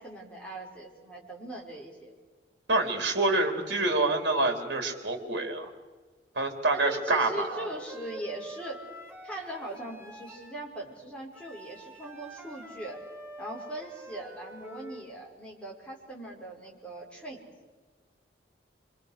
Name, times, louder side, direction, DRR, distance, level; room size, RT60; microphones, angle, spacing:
voice 1, 0.0-2.1 6.7-8.8 9.2-13.0 13.4-17.4, right 1 dB, 5° left, -3 dB, 5.4 m, -40 dB
voice 2, 2.7-5.7 6.3-7.7, right 2 dB, 65° right, 5 dB, 3.3 m, -27 dB
Wind instrument woodwind instrument, 7.0-10.5 11.3-15.1, right 1 dB, 15° right, 3.1 m, -46 dB
26.0 x 25.0 x 6.6 m, 1.4 s
head